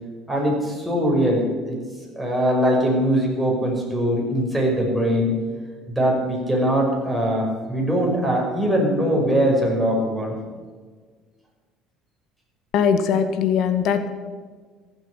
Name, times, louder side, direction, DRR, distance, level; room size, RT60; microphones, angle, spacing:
voice 1, 0.3-1.8 2.1-5.3 5.9-10.4, equal, 5° right, -2 dB, 5.8 m, -21 dB
voice 2, 12.7-14.1, left 7 dB, 60° left, 8 dB, 1.8 m, -20 dB
15.0 x 8.3 x 9.1 m, 1.5 s
cardioid pair, 105°, 0 cm